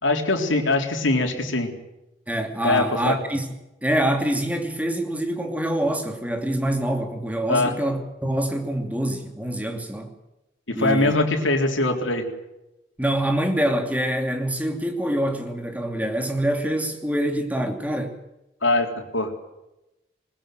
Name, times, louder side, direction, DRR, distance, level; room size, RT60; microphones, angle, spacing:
voice 1, 0.0-1.7 2.6-3.2 7.5-7.7 10.7-12.2 18.6-19.5, left 2 dB, 85° left, 3.8 m, -22 dB
voice 2, 2.3-3.5 3.8-10.1 10.7-11.2 13.0-18.2, right 1 dB, 10° right, 2.7 m, -25 dB
20.5 x 20.0 x 7.7 m
head